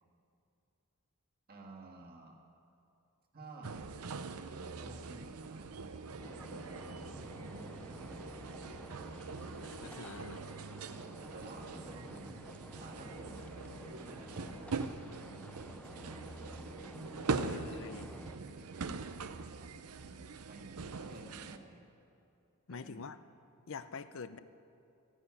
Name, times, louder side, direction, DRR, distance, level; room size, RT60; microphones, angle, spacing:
voice 1, 1.5-2.4 3.3-3.9 4.2-8.4 11.3-12.4 12.8-16.2 17.2-19.2 20.5-20.8 21.1-21.8 22.7-23.1, right 2 dB, 45° right, 0 dB, 2.0 m, -54 dB
sound 1, 3.6-21.6, right 4 dB, 90° right, 0.7 m, -42 dB
sound 2, 6.2-18.4, left 1 dB, 5° left, 0.4 m, -51 dB
voice 2, 9.6-10.4 17.5-18.1 22.7-23.2 23.7-24.4, left 5 dB, 60° left, 13 dB, 0.6 m, -45 dB
14.5 x 9.9 x 9.6 m, 2.7 s
head